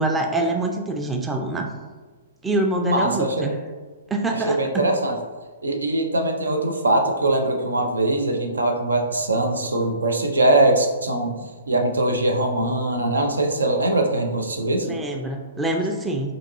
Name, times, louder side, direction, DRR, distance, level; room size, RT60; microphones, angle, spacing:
voice 1, 0.0-1.7 2.4-3.5 4.1-4.6 14.8-16.3, right 2 dB, 10° right, 3 dB, 0.4 m, -25 dB
voice 2, 2.8-3.5 4.5-5.2 5.6-11.3 11.7-15.0, right 2 dB, 80° right, 3 dB, 0.5 m, -21 dB
5.1 x 2.9 x 2.6 m, 1.3 s
figure-of-eight pair, 115°, 0 cm